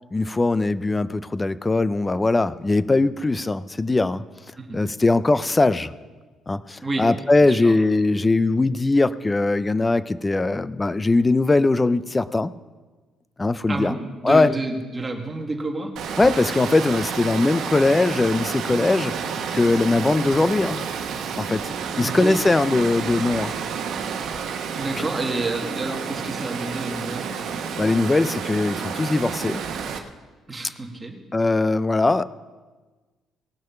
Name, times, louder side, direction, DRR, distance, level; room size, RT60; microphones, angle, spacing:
voice 1, 0.1-4.2 4.7-5.9 6.5-12.5 13.4-14.0 14.2-14.5 16.2-19.2 19.5-20.8 21.4-23.5 25.0-25.1 27.8-29.6 31.3-32.2, left 2 dB, 15° left, 16 dB, 0.4 m, -20 dB
voice 2, 13.7-15.9 22.0-22.4 24.8-27.3 30.5-31.1, right 2 dB, 20° right, 2 dB, 1.6 m, -29 dB
Water, 16.0-30.0, right 6 dB, 70° right, 1.0 m, -30 dB
18.5 x 6.3 x 5.8 m, 1.3 s
cardioid pair, 140°, 0 cm